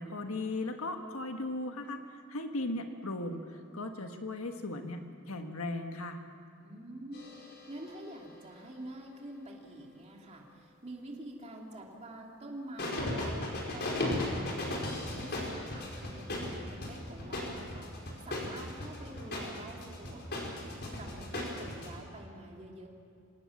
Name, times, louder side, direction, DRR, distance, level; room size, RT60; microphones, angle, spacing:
voice 1, 0.0-6.2, left 2 dB, 75° left, 5 dB, 1.5 m, -37 dB
voice 2, 6.6-22.9, right 1 dB, 30° right, -1 dB, 3.0 m, -47 dB
sound 1, 7.1-8.6 12.8-21.9, left 1 dB, 50° left, 5.1 m, -37 dB
26.5 x 18.0 x 7.4 m, 2.6 s
head